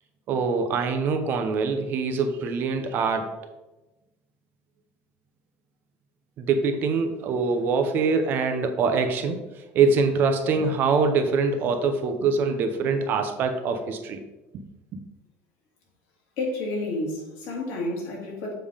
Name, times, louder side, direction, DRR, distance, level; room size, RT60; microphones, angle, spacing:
voice 1, 0.3-3.3 6.4-9.4 9.7-14.2, right 4 dB, 40° right, 6 dB, 0.7 m, -24 dB
voice 2, 16.4-18.5, left 2 dB, 60° left, -1 dB, 2.0 m, -30 dB
7.3 x 3.4 x 5.0 m, 1.0 s
cardioid pair, 165°, 5 cm